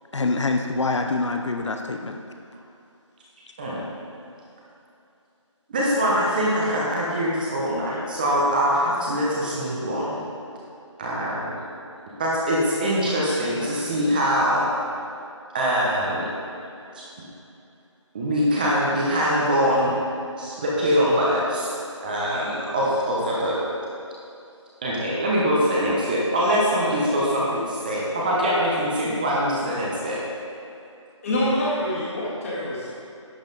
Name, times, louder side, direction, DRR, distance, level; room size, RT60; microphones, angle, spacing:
voice 1, 0.1-2.2, left 3 dB, 65° left, 4 dB, 0.7 m, -25 dB
voice 2, 5.7-10.2 11.0-11.6 12.2-14.6 15.5-16.2 16.9-17.0 18.1-19.9 20.4-21.7 22.0-23.6 24.8-30.2, equal, 15° right, -5 dB, 0.9 m, -23 dB
voice 3, 31.2-32.9, left 1 dB, 25° left, -6 dB, 2.0 m, -25 dB
11.0 x 7.1 x 4.0 m, 2.7 s
figure-of-eight pair, 165°, 16 cm